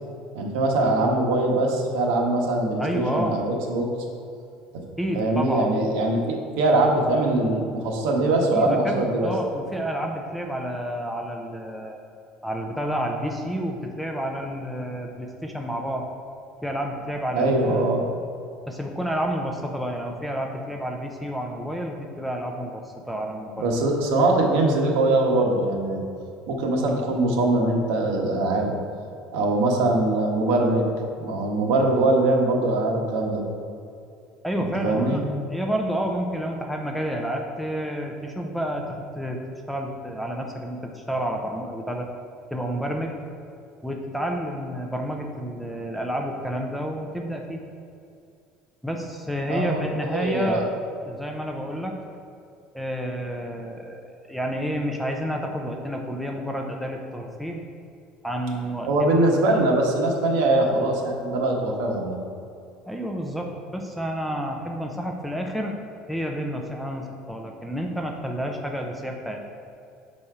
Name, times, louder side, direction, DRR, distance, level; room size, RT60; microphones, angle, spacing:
voice 1, 0.3-3.9 5.1-9.3 17.3-18.0 23.6-26.0 26.5-28.7 29.3-30.9 31.2-33.4 34.6-35.2 49.5-49.8 50.1-50.7 58.9-62.2, right 2 dB, 75° right, 0 dB, 1.1 m, -22 dB
voice 2, 2.8-3.4 5.0-5.7 8.5-12.0 12.4-16.1 16.6-17.9 18.7-23.7 34.4-39.4 39.7-42.1 42.5-43.2 43.8-47.6 48.8-50.7 51.0-52.0 52.7-57.6 58.2-59.1 62.9-65.8 66.1-69.4, equal, ahead, 2 dB, 0.4 m, -30 dB
6.5 x 4.2 x 4.8 m, 2.5 s
cardioid pair, 170°, 3 cm